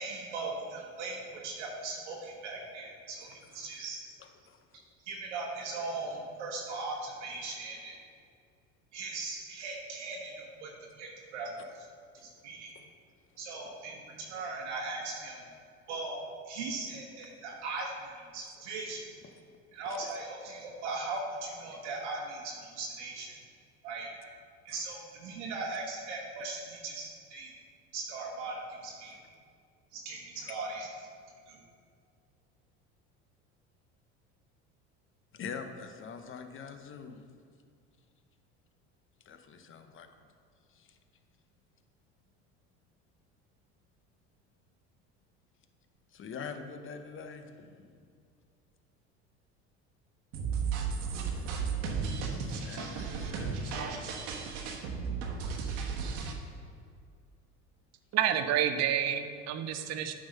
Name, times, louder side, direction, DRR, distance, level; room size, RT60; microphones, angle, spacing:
voice 1, 0.0-4.0 5.1-7.9 8.9-10.7 11.0-11.9 12.2-12.8 13.4-15.4 15.9-19.1 19.7-23.4 23.8-24.1 24.6-27.5 27.9-29.2 29.9-30.9 31.5-31.6, right 3 dB, 90° right, -2 dB, 1.2 m, -39 dB
voice 2, 4.2-4.6 12.7-12.8 19.2-19.4 19.9-20.1 24.7-24.8 30.3-30.5 35.3-37.2 39.3-40.1 40.7-41.0 46.1-47.9 52.3-54.4, left 5 dB, 35° left, 7 dB, 0.8 m, -45 dB
sound 1, 50.3-56.3, right 5 dB, 70° right, 1.1 m, -34 dB
voice 3, 58.1-60.1, right 10 dB, 50° right, 9 dB, 0.7 m, -29 dB
8.7 x 3.8 x 5.3 m, 2.2 s
hypercardioid pair, 85°, 34 cm